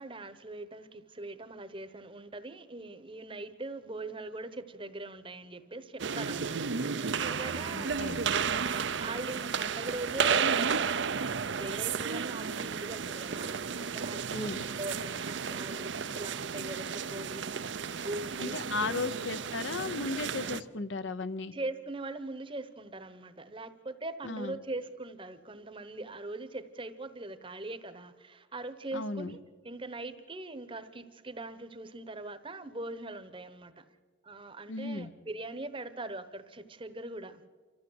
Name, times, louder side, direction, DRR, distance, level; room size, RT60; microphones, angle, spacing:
voice 1, 0.0-8.0 8.4-17.6 18.0-18.6 18.8-19.0 21.5-29.4 29.6-33.8 34.2-37.4, right 2 dB, 25° right, 12 dB, 1.0 m, -41 dB
sound 1, 6.0-20.6, right 6 dB, 65° right, 0.6 m, -33 dB
voice 2, 7.7-8.2 14.3-14.6 18.4-21.5 24.2-24.6 28.9-29.3 34.7-35.1, left 3 dB, 70° left, 13 dB, 0.9 m, -35 dB
28.0 x 14.0 x 8.0 m, 1.6 s
head